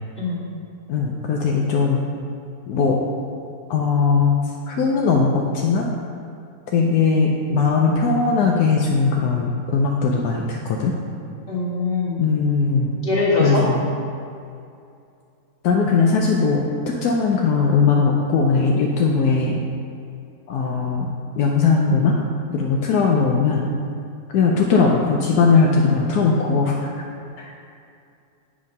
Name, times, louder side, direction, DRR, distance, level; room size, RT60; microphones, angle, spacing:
voice 1, 0.9-2.0 2.7-3.0 3.7-5.9 6.7-11.0 12.2-12.9 13.4-13.9 15.6-19.6 20.5-22.2 22.5-23.7 24.3-26.9 27.4-27.5, left 4 dB, 75° left, -1 dB, 1.1 m, -19 dB
voice 2, 11.5-12.2 13.0-13.6, left 2 dB, 35° left, -7 dB, 1.8 m, -22 dB
7.7 x 3.6 x 5.2 m, 2.5 s
omnidirectional pair, 1.7 m